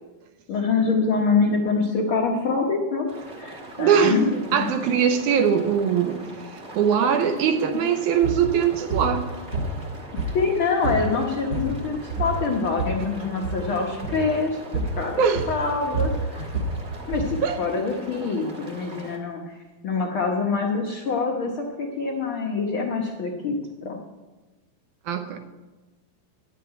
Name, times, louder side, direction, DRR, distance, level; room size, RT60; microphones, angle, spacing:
voice 1, 0.5-3.1 3.4-4.7 10.3-14.6 14.9-15.2 15.5-16.5 17.1-19.5 19.8-24.0, left 4 dB, 80° left, 1 dB, 1.1 m, -25 dB
sound 1, 3.1-19.2, right 1 dB, 35° right, 1.0 m, -41 dB
voice 2, 3.8-4.2 4.5-6.2 6.5-9.3 15.2-15.5 17.4-17.6 25.1-25.4, right 7 dB, 75° right, 8 dB, 1.9 m, -21 dB
sound 2, 8.1-8.4 8.9-9.1 9.5-10.5 10.8-11.1 11.4-11.8 12.1-13.0 13.3-13.6 14.0-14.2 14.7-15.0 15.3-17.4, right 3 dB, 55° right, 3.5 m, -28 dB
11.0 x 7.6 x 8.9 m, 1.2 s
omnidirectional pair, 4.1 m